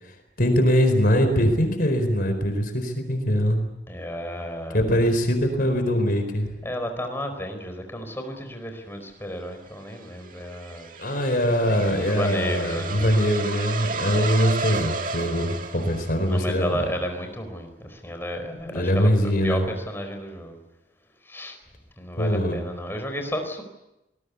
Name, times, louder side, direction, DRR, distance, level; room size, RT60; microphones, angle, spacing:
voice 1, 0.0-3.6 4.7-6.5 11.0-16.9 18.7-19.6 22.2-22.6, equal, 50° left, 6 dB, 4.4 m, -22 dB
voice 2, 3.9-4.9 6.6-10.9 12.0-13.1 14.1-14.3 16.3-20.6 21.2-21.6 22.0-23.6, equal, 15° left, 6 dB, 4.6 m, -32 dB
sound 1, 9.5-16.6, right 4 dB, 50° right, 1.9 m, -33 dB
26.5 x 20.0 x 8.4 m, 0.95 s
head